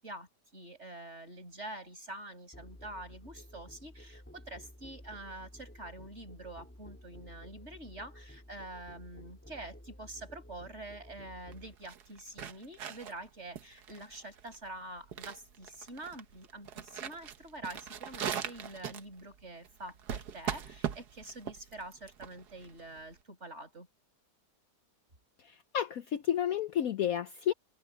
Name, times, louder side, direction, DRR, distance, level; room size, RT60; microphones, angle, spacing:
voice 1, 0.0-23.9, right 2 dB, 40° right, 6.7 m, -46 dB
Musical instrument, 2.5-11.8, left 1 dB, 5° left, 2.0 m, -53 dB
sound 1, 11.5-23.2, right 8 dB, 65° right, 1.6 m, -41 dB
voice 2, 25.4-27.5, left 10 dB, 65° left, 1.0 m, -31 dB
open air
omnidirectional pair, 1.9 m